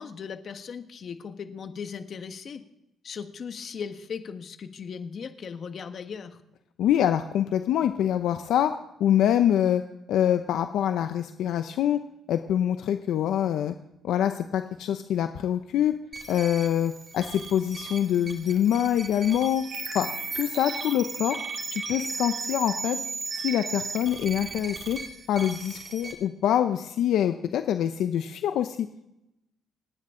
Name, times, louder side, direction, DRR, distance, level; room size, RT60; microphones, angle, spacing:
voice 1, 0.0-2.6 3.0-6.4, left 6 dB, 55° left, 8 dB, 1.4 m, -38 dB
voice 2, 6.8-9.8 10.1-12.0 12.3-13.7 14.0-16.0 16.3-19.6 19.9-20.1 20.3-21.4 21.7-23.0 23.4-25.0 25.3-28.9, left 10 dB, 80° left, 8 dB, 0.7 m, -25 dB
sound 1, 16.1-26.1, right 4 dB, 35° right, 2.6 m, -36 dB
28.0 x 9.7 x 3.8 m, 0.87 s
cardioid pair, 90°, 0 cm